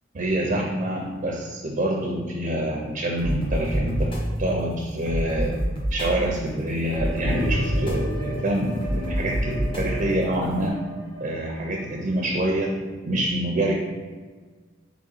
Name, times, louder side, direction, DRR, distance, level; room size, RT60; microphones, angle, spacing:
voice 1, 0.1-5.6 5.9-10.9 11.2-13.7, right 1 dB, 40° right, 0 dB, 0.5 m, -26 dB
sound 1, 3.2-10.7, equal, 25° left, 0.8 m, -29 dB
sound 2, 7.0-11.4, right 4 dB, 45° left, 1.1 m, -40 dB
sound 3, 7.2-11.9, left 1 dB, 85° left, 0.9 m, -33 dB
3.9 x 3.0 x 4.0 m, 1.4 s
head